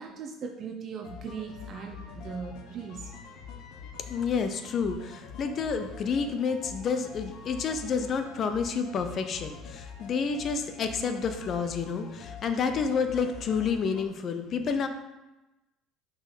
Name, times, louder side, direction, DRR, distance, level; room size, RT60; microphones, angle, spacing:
voice 1, 0.0-3.1, right 6 dB, 45° right, 3 dB, 0.8 m, -39 dB
sound 1, 1.0-14.1, left 6 dB, 65° left, 1.0 m, -45 dB
voice 2, 4.1-14.9, left 5 dB, 45° left, 8 dB, 0.8 m, -29 dB
5.6 x 4.7 x 5.2 m, 1.0 s
hypercardioid pair, 65°, 0 cm